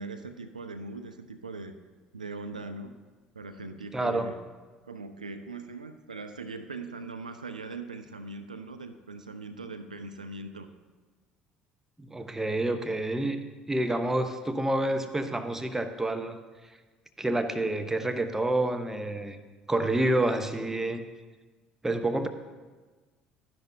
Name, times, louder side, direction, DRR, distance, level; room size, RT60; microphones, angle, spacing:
voice 1, 0.0-1.7 2.1-2.9 3.3-4.4 4.9-10.7, right 3 dB, 90° right, 9 dB, 0.4 m, -40 dB
voice 2, 3.9-4.3 12.0-13.4 13.7-16.4 17.2-19.4 19.7-21.0 21.8-22.3, right 1 dB, 10° right, 7 dB, 0.8 m, -28 dB
12.0 x 10.5 x 2.7 m, 1.3 s
figure-of-eight pair, 60°, 4 cm